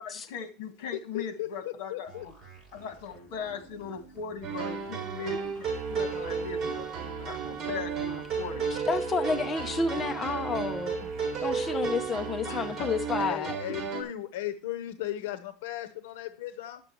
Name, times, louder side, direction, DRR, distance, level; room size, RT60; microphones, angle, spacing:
voice 1, 0.0-2.3 2.7-6.9 7.2-8.7 12.5-12.9, left 6 dB, 70° left, 2.0 m, -39 dB
voice 2, 0.9-2.3 13.2-16.8, left 13 dB, 85° left, 0.8 m, -36 dB
sound 1, 2.1-12.1, right 3 dB, 15° right, 7.1 m, -52 dB
sound 2, 4.4-14.0, right 6 dB, 30° right, 3.2 m, -33 dB
voice 3, 8.9-11.1 11.4-13.6, left 4 dB, 15° left, 0.7 m, -30 dB
11.0 x 7.7 x 4.5 m
supercardioid pair, 155°, 0 cm